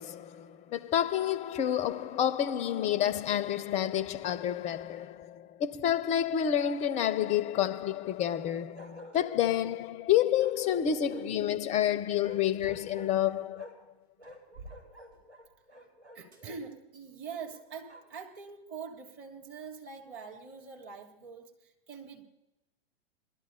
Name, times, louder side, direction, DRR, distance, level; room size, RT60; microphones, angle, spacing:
voice 1, 0.0-13.7, left 10 dB, 20° left, 0.5 m, -29 dB
Bark, 3.2-3.9 6.3-7.4 8.8-9.7 10.3-11.4 12.2-13.9 14.2-16.6 17.3-18.2, equal, 85° right, 4.2 m, -51 dB
sound 1, 12.5-13.0 13.7-13.8 14.2-15.6 16.3-16.5 17.2-18.2, right 2 dB, 70° right, 5.0 m, -52 dB
voice 2, 16.1-22.2, right 5 dB, 40° right, 3.1 m, -44 dB
23.0 x 13.0 x 2.7 m
figure-of-eight pair, 100°, 33 cm